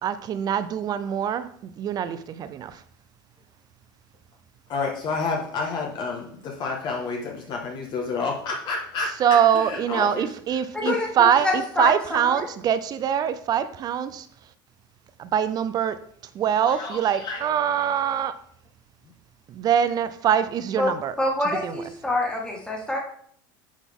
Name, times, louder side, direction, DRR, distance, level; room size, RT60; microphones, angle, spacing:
voice 1, 0.0-2.8 9.2-14.3 15.2-16.0 16.3-18.4 19.5-21.1 21.6-21.8, right 9 dB, 35° right, 13 dB, 0.5 m, -24 dB
voice 2, 4.7-9.1 9.5-10.3 10.8-11.0 16.7-17.4, left 4 dB, 45° left, 0 dB, 1.5 m, -29 dB
voice 3, 10.7-12.5 20.8-20.9 21.2-23.0, left 2 dB, 10° left, -2 dB, 1.9 m, -26 dB
9.9 x 4.0 x 3.6 m, 0.63 s
supercardioid pair, 120°, 11 cm